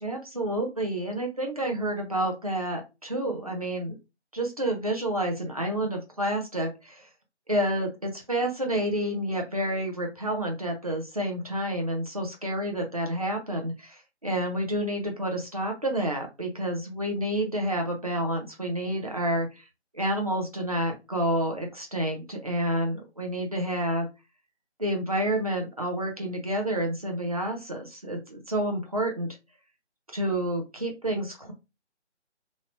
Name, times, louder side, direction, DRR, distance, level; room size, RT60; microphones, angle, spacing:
voice 1, 0.0-4.0 4.3-7.1 7.5-19.6 19.9-24.1 24.8-29.4 30.1-31.5, right 1 dB, 35° right, 1 dB, 0.5 m, -29 dB
2.8 x 2.0 x 2.8 m, 0.26 s
figure-of-eight pair, 155°, 35 cm